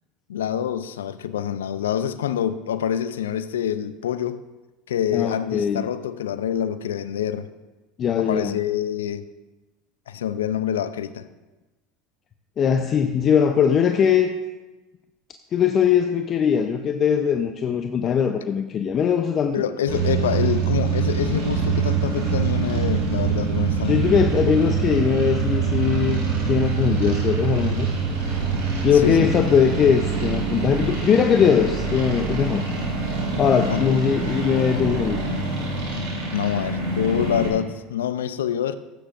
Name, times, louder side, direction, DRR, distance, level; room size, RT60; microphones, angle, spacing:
voice 1, 0.3-4.4 4.9-7.5 8.2-9.3 10.1-11.3 19.5-24.0 28.9-29.3 33.7-34.0 36.3-38.8, left 10 dB, 85° left, 13 dB, 0.5 m, -26 dB
voice 2, 5.1-5.9 8.0-8.6 12.6-14.3 15.5-19.6 23.8-27.9 28.8-32.7 33.4-35.2, left 7 dB, 40° left, 6 dB, 0.6 m, -20 dB
sound 1, 19.9-37.5, right 5 dB, 80° right, 3.9 m, -24 dB
16.0 x 8.8 x 2.6 m, 1.1 s
hypercardioid pair, 85°, 0 cm